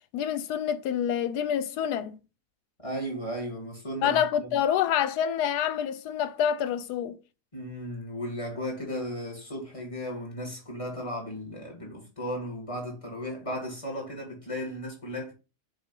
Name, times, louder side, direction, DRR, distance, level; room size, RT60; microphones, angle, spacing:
voice 1, 0.1-2.2 4.0-7.2, left 9 dB, 80° left, 1.2 m, -27 dB
voice 2, 2.8-4.5 7.5-15.3, equal, 20° left, 2.0 m, -35 dB
6.7 x 2.6 x 5.3 m
omnidirectional pair, 1.7 m